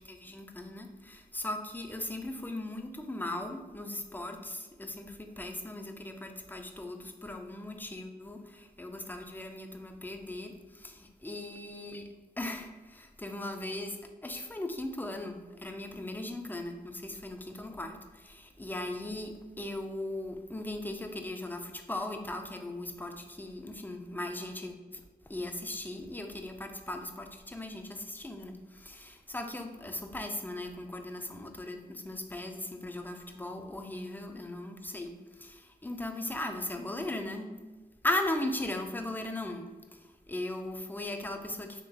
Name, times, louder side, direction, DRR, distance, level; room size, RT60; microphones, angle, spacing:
voice 1, 0.1-12.0 12.4-25.0 25.3-37.6 38.0-41.8, left 1 dB, 10° left, 4 dB, 0.4 m, -38 dB
3.7 x 3.0 x 2.8 m, 1.3 s
cardioid pair, 65°, 17 cm